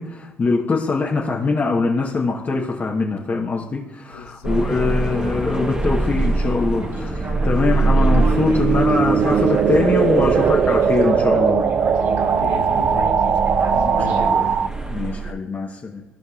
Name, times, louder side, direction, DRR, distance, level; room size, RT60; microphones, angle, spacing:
voice 1, 0.0-11.7 13.8-16.0, left 4 dB, 30° left, -2 dB, 1.1 m, -23 dB
voice 2, 4.1-4.6 4.9-5.0 12.2-13.3 13.7-14.3, left 8 dB, 80° left, 9 dB, 0.7 m, -35 dB
sound 1, 4.4-15.3, right 2 dB, 15° right, 1.1 m, -25 dB
sound 2, 6.2-14.7, right 7 dB, 40° right, 0.4 m, -20 dB
Speech synthesizer, 6.2-14.5, right 2 dB, 55° right, 2.2 m, -33 dB
16.0 x 5.3 x 2.4 m, 1.0 s
hypercardioid pair, 60°, 6 cm